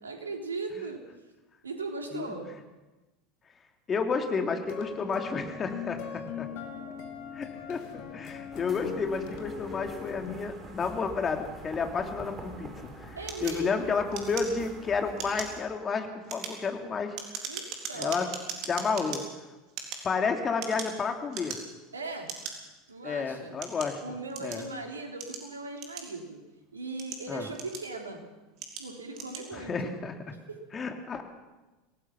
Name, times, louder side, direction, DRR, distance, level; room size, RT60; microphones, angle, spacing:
voice 1, 0.0-1.0 1.6-2.5 6.8-6.9 13.1-13.9 17.5-18.3 21.9-22.3 22.9-23.5 24.0-26.4 26.7-28.2 28.8-29.9 30.5-30.6, right 3 dB, 80° right, 3 dB, 3.4 m, -38 dB
voice 2, 3.9-6.5 7.3-17.2 18.0-18.3 18.7-19.2 20.0-21.6 23.0-24.0 24.4-24.6 27.3-27.5 29.5-30.1 30.7-31.2, left 5 dB, 30° left, 4 dB, 3.0 m, -31 dB
sound 1, 4.5-10.3, left 8 dB, 55° left, 2.8 m, -40 dB
sound 2, 8.5-15.6, right 1 dB, 20° right, 6.6 m, -46 dB
sound 3, 13.3-14.8 15.1-15.6 16.1-19.2 19.7-21.0 21.3-21.8 22.3-22.5 23.2-24.7 25.2-26.4 26.8-28.0 28.6-28.9 29.1-29.5, right 7 dB, 50° right, 3.9 m, -39 dB
26.0 x 18.5 x 6.1 m, 1.1 s
figure-of-eight pair, 75°, 0 cm